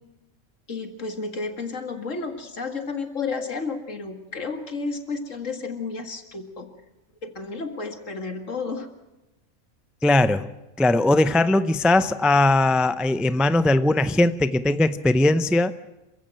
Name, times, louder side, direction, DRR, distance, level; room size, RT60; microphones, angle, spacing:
voice 1, 0.7-6.7 7.2-8.9, left 4 dB, 80° left, 6 dB, 2.4 m, -32 dB
voice 2, 10.0-10.5 10.8-15.7, left 2 dB, ahead, 12 dB, 0.3 m, -19 dB
27.0 x 16.0 x 7.7 m, 1.0 s
omnidirectional pair, 1.3 m